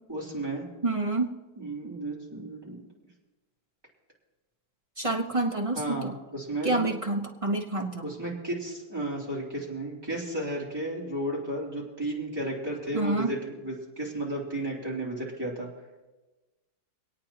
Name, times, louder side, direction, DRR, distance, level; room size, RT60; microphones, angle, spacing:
voice 1, 0.1-0.7 1.6-2.8 5.7-6.8 8.0-15.7, right 1 dB, 10° right, -5 dB, 3.1 m, -33 dB
voice 2, 0.8-1.3 5.0-6.1 6.6-8.1 12.9-13.3, right 2 dB, 35° right, 1 dB, 0.5 m, -28 dB
26.0 x 8.8 x 2.9 m, 1.2 s
omnidirectional pair, 2.0 m